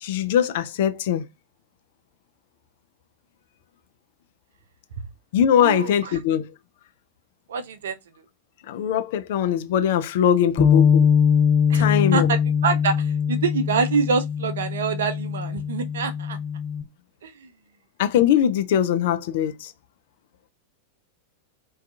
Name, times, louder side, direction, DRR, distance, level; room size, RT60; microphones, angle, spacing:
voice 1, 0.0-1.2 5.3-6.5 8.7-11.0 11.7-12.3 18.0-19.7, left 9 dB, 55° left, 0.3 m, -21 dB
voice 2, 5.6-6.1 7.5-8.0 11.7-16.4 17.2-17.3, right 5 dB, 60° right, 0.4 m, -26 dB
Bass guitar, 10.6-16.8, left 7 dB, 30° left, 1.0 m, -21 dB
2.3 x 2.3 x 2.6 m
figure-of-eight pair, 90°, 0 cm